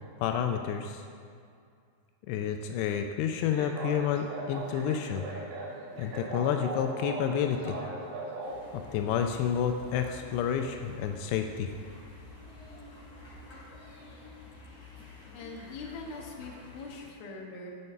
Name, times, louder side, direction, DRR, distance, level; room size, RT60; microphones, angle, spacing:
voice 1, 0.2-1.0 2.3-5.3 6.0-7.8 8.7-11.7, left 8 dB, 85° left, 5 dB, 2.4 m, -30 dB
sound 1, 3.4-8.6, right 2 dB, 70° right, 3.9 m, -39 dB
sound 2, 8.4-17.0, left 3 dB, 35° left, 3.5 m, -49 dB
voice 2, 15.3-17.7, left 3 dB, 65° left, 0 dB, 2.7 m, -42 dB
11.0 x 5.6 x 6.6 m, 2.3 s
omnidirectional pair, 5.4 m